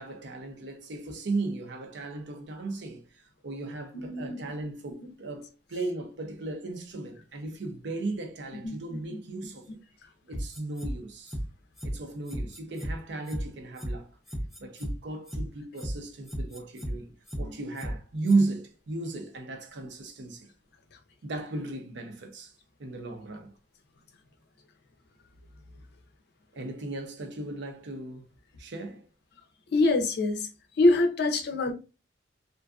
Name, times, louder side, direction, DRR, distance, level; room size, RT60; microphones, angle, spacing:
voice 1, 0.0-9.7 10.2-11.4 11.8-14.1 14.6-20.5 21.2-22.5 22.8-23.5 26.5-28.3 28.6-29.0, right 3 dB, 65° right, 0.6 m, -35 dB
voice 2, 3.9-4.4 5.0-5.1 8.6-9.2 29.7-30.5 30.8-31.7, left 2 dB, 60° left, 0.5 m, -25 dB
sound 1, 10.3-10.9 11.3-11.4 11.8-11.9 12.3-12.9 13.3-13.4 13.8-13.9 14.3-14.9 15.3-15.4 15.8-15.9 16.3-16.9 17.3-17.4 17.8-17.9 18.3-18.4, equal, ahead, 0.5 m, -34 dB
2.5 x 2.3 x 2.3 m
head